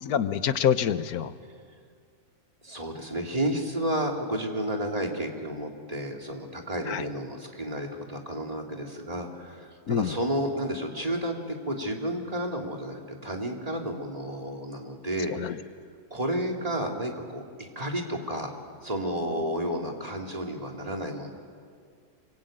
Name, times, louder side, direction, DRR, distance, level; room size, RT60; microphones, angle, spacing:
voice 1, 0.0-1.3 6.9-7.1 9.9-10.1 15.3-15.6, left 9 dB, 90° left, 12 dB, 1.4 m, -26 dB
voice 2, 2.6-15.6 16.1-18.5 18.8-21.3, right 1 dB, 25° right, 1 dB, 3.0 m, -31 dB
26.5 x 24.0 x 9.0 m, 2.2 s
omnidirectional pair, 1.5 m